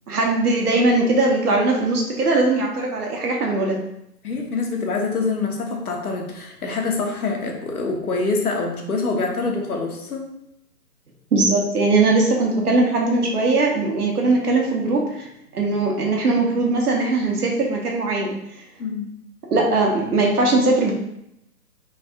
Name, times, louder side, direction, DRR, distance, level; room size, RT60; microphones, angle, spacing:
voice 1, 0.1-3.8 11.3-15.3 15.5-18.4 19.5-20.9, right 2 dB, 70° right, 0 dB, 1.1 m, -20 dB
voice 2, 4.2-10.2 18.8-19.1, left 3 dB, 65° left, 1 dB, 1.0 m, -25 dB
3.4 x 2.4 x 3.5 m, 0.80 s
hypercardioid pair, 160°, 47 cm